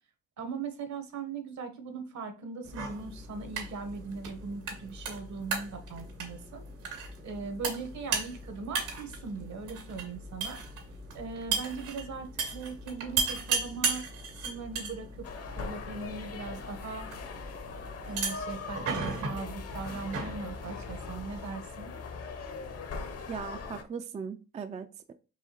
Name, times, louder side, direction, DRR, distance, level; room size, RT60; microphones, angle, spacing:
voice 1, 0.4-6.6 7.2-10.6 11.1-14.0 14.4-15.2 15.6-17.1 18.1-21.9, right 4 dB, 65° right, 7 dB, 1.2 m, -39 dB
sound 1, 2.6-21.5, right 4 dB, 90° right, 2.1 m, -37 dB
sound 2, 15.2-23.8, left 4 dB, 55° left, 0.8 m, -41 dB
voice 2, 23.3-25.1, right 6 dB, 25° right, 8 dB, 0.3 m, -39 dB
4.7 x 3.2 x 2.9 m, 0.34 s
cardioid pair, 90°, 30 cm